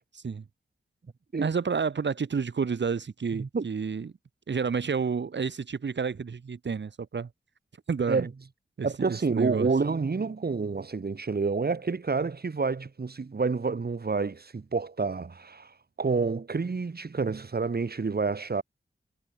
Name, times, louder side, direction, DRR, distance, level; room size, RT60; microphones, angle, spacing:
voice 1, 0.1-0.4 1.4-4.1 4.5-7.3 7.9-8.3 8.8-9.7, right 5 dB, 75° right, 5.0 m, -30 dB
voice 2, 3.3-3.6 8.1-8.3 8.8-18.6, right 4 dB, 60° right, 4.5 m, -29 dB
cardioid pair, 55°, 18 cm